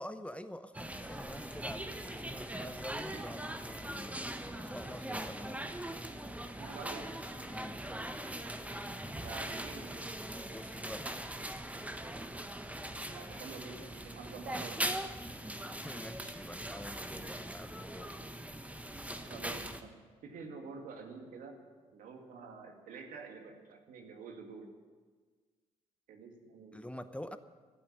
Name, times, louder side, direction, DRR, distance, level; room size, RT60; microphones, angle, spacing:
voice 1, 0.0-4.3 4.6-5.7 7.5-7.8 10.5-11.1 15.6-18.1 26.7-27.4, left 1 dB, 10° left, 11 dB, 0.8 m, -46 dB
sound 1, 0.7-19.8, right 1 dB, 10° right, 1.3 m, -41 dB
voice 2, 6.6-7.1 9.2-10.0 13.1-15.0 19.3-24.7 26.1-26.9, right 5 dB, 70° right, 3 dB, 2.2 m, -48 dB
15.0 x 8.7 x 9.8 m, 1.5 s
hypercardioid pair, 50°, 15 cm